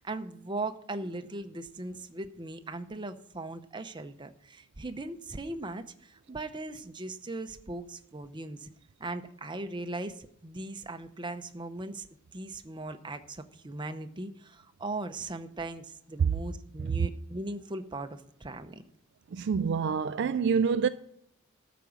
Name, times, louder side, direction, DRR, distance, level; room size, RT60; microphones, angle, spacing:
voice 1, 0.0-8.7 9.0-12.1 12.3-18.8, right 2 dB, 20° right, 0.7 m, -39 dB
voice 2, 19.3-20.9, right 6 dB, 55° right, 0.3 m, -27 dB
13.0 x 5.1 x 7.1 m
head